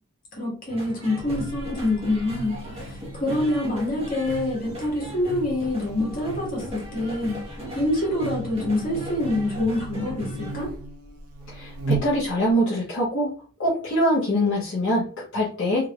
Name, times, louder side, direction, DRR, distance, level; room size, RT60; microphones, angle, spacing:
voice 1, 0.3-7.4 7.7-10.7, left 1 dB, 40° left, -3 dB, 1.7 m, -26 dB
sound 1, 0.7-10.5, equal, 25° right, 1.2 m, -37 dB
Buzz, 1.2-12.6, right 3 dB, 90° right, 0.7 m, -37 dB
voice 2, 11.5-13.3 13.6-15.9, equal, 55° left, -8 dB, 1.0 m, -24 dB
3.5 x 3.4 x 2.4 m, 0.40 s
head